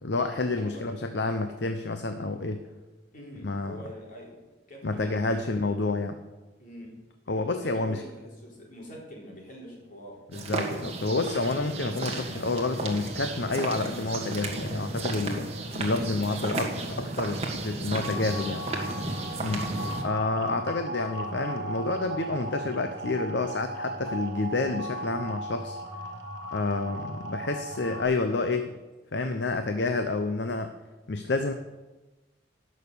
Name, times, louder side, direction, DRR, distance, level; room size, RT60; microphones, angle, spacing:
voice 1, 0.0-2.6 3.4-3.8 4.8-6.2 7.3-8.0 10.3-18.7 19.4-19.7 20.0-25.8 26.5-28.7 29.1-30.7 31.1-31.5, left 3 dB, 60° left, 8 dB, 0.7 m, -29 dB
voice 2, 0.6-0.9 3.1-4.4 4.7-5.5 6.6-7.0 7.3-10.2 20.3-20.7, equal, 45° left, -2 dB, 4.2 m, -45 dB
sound 1, 10.3-20.0, right 2 dB, 30° right, 1.9 m, -33 dB
sound 2, 18.0-28.0, right 1 dB, 60° right, 2.1 m, -37 dB
17.5 x 6.5 x 6.9 m, 1.1 s
head